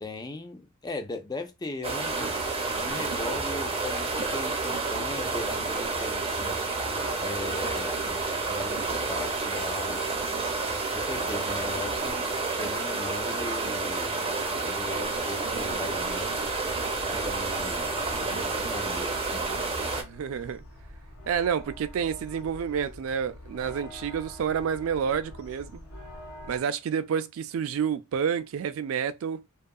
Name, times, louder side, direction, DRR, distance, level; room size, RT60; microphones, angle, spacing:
voice 1, 0.0-2.4 2.7-6.5 7.2-8.0 8.4-10.2 10.9-16.5 17.1-19.5, left 2 dB, 20° left, 0.4 m, -39 dB
sound 1, 1.8-20.0, right 3 dB, 30° right, 0.6 m, -30 dB
sound 2, 15.4-26.6, left 1 dB, 85° left, 0.9 m, -45 dB
voice 2, 20.0-20.6 21.3-25.8 26.5-29.4, right 7 dB, 70° right, 0.3 m, -29 dB
2.7 x 2.3 x 2.2 m
head